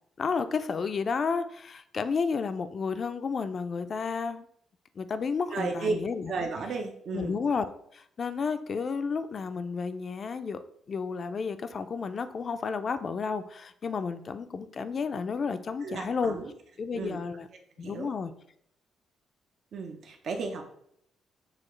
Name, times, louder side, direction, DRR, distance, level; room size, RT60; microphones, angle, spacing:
voice 1, 0.2-4.5 5.0-6.3 7.1-10.6 10.9-16.4 16.8-17.5 17.8-18.3, left 5 dB, 45° left, 10 dB, 0.4 m, -31 dB
voice 2, 5.5-6.0 6.3-7.4 15.8-16.5 16.9-17.2 17.8-18.1 19.7-20.6, right 4 dB, 65° right, 3 dB, 0.6 m, -33 dB
6.3 x 2.4 x 3.1 m, 0.68 s
cardioid pair, 90°, 0 cm